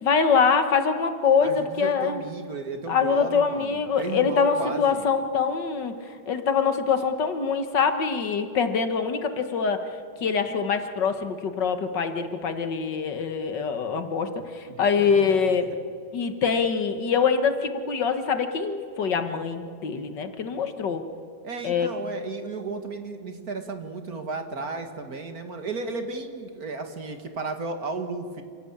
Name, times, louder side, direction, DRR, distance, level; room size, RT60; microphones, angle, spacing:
voice 1, 0.0-2.2 2.9-5.9 6.3-9.8 10.2-15.7 16.1-21.0 21.6-21.9, left 6 dB, 65° left, 8 dB, 2.0 m, -24 dB
voice 2, 1.4-5.1 14.7-15.7 21.4-28.4, right 3 dB, 50° right, 6 dB, 2.2 m, -34 dB
28.0 x 17.0 x 8.7 m, 2.2 s
omnidirectional pair, 2.1 m